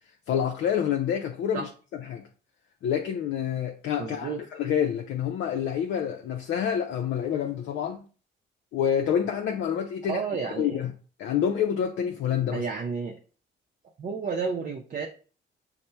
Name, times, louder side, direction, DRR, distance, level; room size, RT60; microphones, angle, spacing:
voice 1, 0.3-1.7 2.0-2.2 2.8-8.0 8.7-10.2 10.6-10.9 11.2-12.6, left 8 dB, 75° left, 0.5 m, -27 dB
voice 2, 4.0-4.4 10.1-10.8 12.5-13.1 14.0-15.1, right 5 dB, 40° right, 0.6 m, -31 dB
5.4 x 2.1 x 4.4 m
cardioid pair, 90°, 20 cm